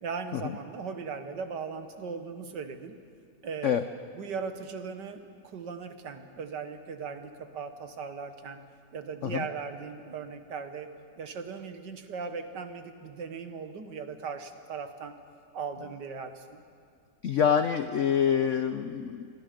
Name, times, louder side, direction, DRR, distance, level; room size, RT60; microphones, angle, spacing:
voice 1, 0.0-3.0 3.4-3.8 4.2-8.6 8.9-10.9 11.2-15.2 15.5-16.6, right 5 dB, 65° right, 8 dB, 1.8 m, -38 dB
voice 2, 17.2-19.3, left 8 dB, 90° left, 10 dB, 0.6 m, -26 dB
27.0 x 23.0 x 5.2 m, 2.2 s
omnidirectional pair, 2.1 m